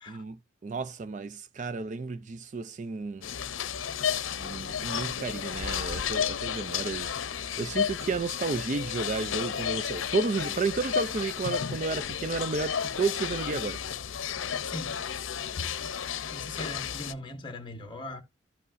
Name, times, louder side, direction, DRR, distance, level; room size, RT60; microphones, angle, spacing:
voice 1, 0.1-3.3 4.3-13.8, right 4 dB, 40° right, 0.3 m, -32 dB
sound 1, 3.2-17.1, left 8 dB, 85° left, 0.6 m, -32 dB
voice 2, 14.6-14.9 16.3-18.2, left 1 dB, 25° left, 1.3 m, -39 dB
14.0 x 5.4 x 2.6 m
head